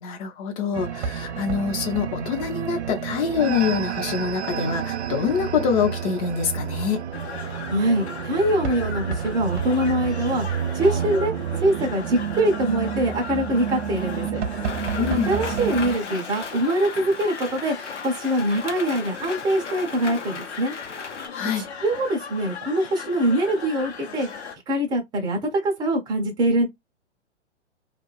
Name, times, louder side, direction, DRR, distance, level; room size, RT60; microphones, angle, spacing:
voice 1, 0.0-7.1 15.0-15.3 21.3-21.7, left 6 dB, 30° left, 0.7 m, -25 dB
sound 1, 0.7-16.0, right 8 dB, 70° right, 0.5 m, -30 dB
sound 2, 7.1-24.6, left 6 dB, 65° left, 0.9 m, -38 dB
voice 2, 7.7-10.4 10.7-14.4 15.3-17.8 18.0-20.7 21.8-24.3 24.7-26.7, right 1 dB, 10° right, 0.6 m, -23 dB
Rain, 14.6-21.3, left 4 dB, 90° left, 0.7 m, -37 dB
2.5 x 2.2 x 3.0 m
figure-of-eight pair, 115°, 35 cm